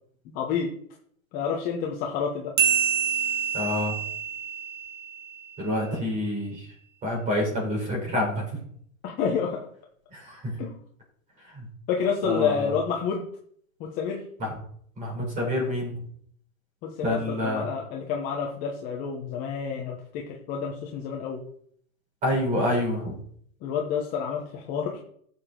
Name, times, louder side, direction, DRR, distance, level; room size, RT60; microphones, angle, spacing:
voice 1, 0.3-0.7 1.3-2.5 9.0-9.6 10.6-10.7 11.9-13.2 13.8-14.2 16.8-21.4 23.6-25.0, left 6 dB, 20° left, 0 dB, 1.1 m, -29 dB
sound 1, 2.6-5.6, right 7 dB, 75° right, 3.0 m, -27 dB
voice 2, 3.5-4.0 5.6-6.7 7.0-8.4 10.1-10.5 11.6-11.7 12.2-12.6 14.4-14.5 15.0-16.0 17.0-17.6 22.2-23.2, left 1 dB, 20° right, 0 dB, 4.2 m, -27 dB
11.0 x 7.2 x 3.9 m, 0.64 s
hypercardioid pair, 160°, 42 cm